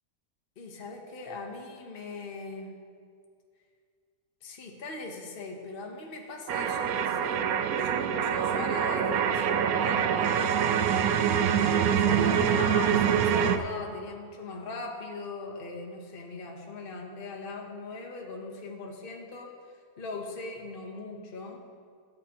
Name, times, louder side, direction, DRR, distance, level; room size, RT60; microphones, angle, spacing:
voice 1, 0.6-2.7 4.4-10.4 11.5-19.5 20.0-21.6, left 3 dB, 40° left, 1 dB, 1.2 m, -40 dB
sound 1, 6.5-13.6, right 8 dB, 80° right, 1.1 m, -25 dB
18.5 x 8.3 x 3.0 m, 2.2 s
omnidirectional pair, 1.5 m